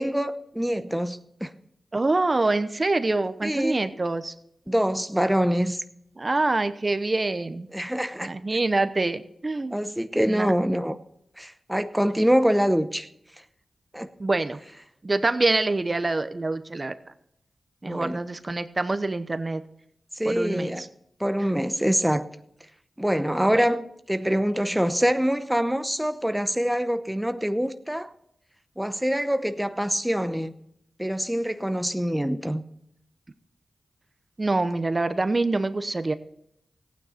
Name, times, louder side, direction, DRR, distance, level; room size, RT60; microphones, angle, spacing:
voice 1, 0.0-1.5 3.4-3.8 4.7-5.8 7.7-8.3 9.7-11.0 11.4-13.1 13.9-14.1 17.8-18.2 20.1-20.9 21.2-22.3 23.0-28.1 28.8-30.5 31.0-32.6, equal, 5° right, 9 dB, 0.8 m, -25 dB
voice 2, 1.9-4.3 6.2-7.7 8.2-9.8 10.2-10.5 14.2-14.6 15.0-17.0 17.8-19.6 20.2-20.9 23.5-23.6 34.4-36.1, right 2 dB, 40° right, 11 dB, 0.8 m, -25 dB
15.0 x 9.4 x 4.3 m, 0.77 s
cardioid pair, 50°, 0 cm